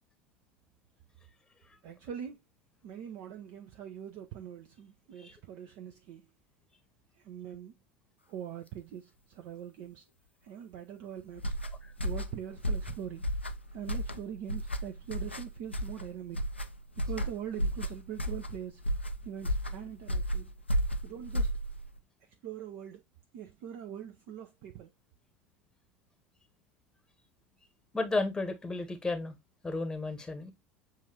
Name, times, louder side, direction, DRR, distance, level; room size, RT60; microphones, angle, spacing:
voice 1, 1.8-2.4 2.8-6.3 7.2-7.7 8.3-10.0 10.4-11.5 12.0-13.3 13.7-16.4 17.0-18.8 19.2-20.5 21.0-21.5 22.4-23.0 23.3-24.9, right 9 dB, 50° right, 0.6 m, -42 dB
sound 1, 11.4-22.0, equal, 90° left, 0.4 m, -33 dB
voice 2, 27.9-29.3 29.6-30.5, left 3 dB, 10° left, 0.9 m, -33 dB
7.2 x 2.6 x 2.8 m
figure-of-eight pair, 75°, 6 cm